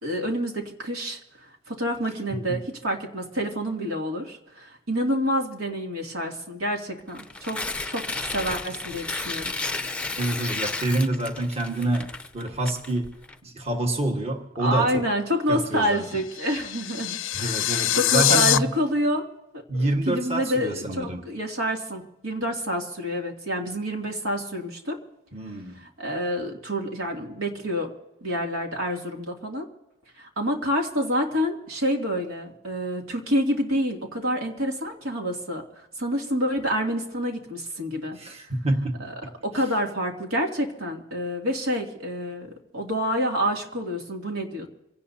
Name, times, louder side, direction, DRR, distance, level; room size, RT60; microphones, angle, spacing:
voice 1, 0.0-1.2 1.7-9.5 14.6-19.2 19.5-25.0 26.0-27.9 28.2-29.7 30.2-38.2 39.0-39.1 39.4-44.7, equal, 85° right, 1 dB, 2.6 m, -28 dB
Tearing, 7.1-13.3, left 3 dB, 5° left, 0.6 m, -33 dB
voice 2, 10.2-12.1 12.3-13.1 13.4-15.1 15.5-16.2 17.3-18.7 19.7-21.2 25.3-25.8 38.1-39.0 39.6-39.7, right 1 dB, 30° right, 3 dB, 1.5 m, -27 dB
sound 1, 15.9-18.6, left 13 dB, 65° left, 0.5 m, -24 dB
26.5 x 17.5 x 2.8 m, 0.91 s
head